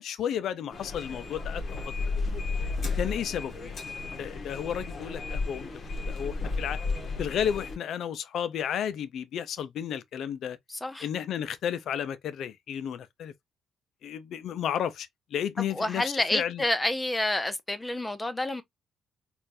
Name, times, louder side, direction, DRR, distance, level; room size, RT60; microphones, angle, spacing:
voice 1, 0.0-1.6 3.0-3.8 4.2-5.7 6.1-6.8 7.2-10.6 11.0-13.3 14.0-16.6, left 9 dB, 70° left, 0.5 m, -32 dB
sound 1, 0.7-7.8, left 3 dB, 45° left, 1.3 m, -33 dB
voice 2, 10.7-11.1 15.6-18.6, left 1 dB, 15° left, 0.7 m, -29 dB
4.3 x 2.5 x 2.6 m
cardioid pair, 90°, 0 cm